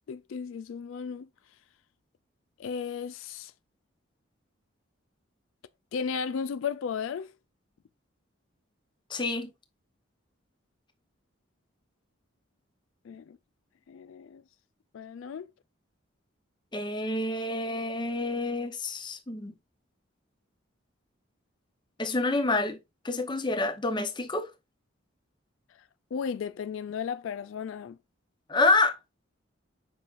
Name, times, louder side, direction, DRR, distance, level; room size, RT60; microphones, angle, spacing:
voice 1, 0.1-1.3 2.6-3.5 5.9-7.3 13.0-13.4 13.9-14.4 14.9-15.5 26.1-28.0, left 6 dB, 75° left, 0.3 m, -35 dB
voice 2, 9.1-9.5 16.7-19.5 22.0-22.8 23.0-24.5 28.5-29.0, left 2 dB, 20° left, 0.8 m, -27 dB
7.6 x 5.5 x 2.5 m
head